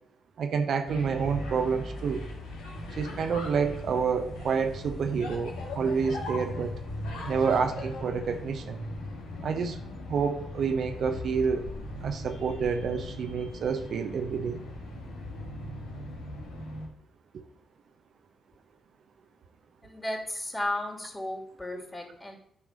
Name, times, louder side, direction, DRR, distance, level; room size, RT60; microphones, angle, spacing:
voice 1, 0.4-2.2 2.9-6.8 7.3-8.8 9.4-9.8 10.1-11.7 12.0-14.6 17.3-17.4 21.7-21.8, right 6 dB, 60° right, 6 dB, 0.9 m, -29 dB
sound 1, 0.8-16.9, left 1 dB, 80° left, 2.0 m, -39 dB
voice 2, 19.8-22.4, left 1 dB, 20° left, 1 dB, 3.3 m, -34 dB
9.6 x 4.7 x 6.5 m, 0.73 s
hypercardioid pair, 40°, 0 cm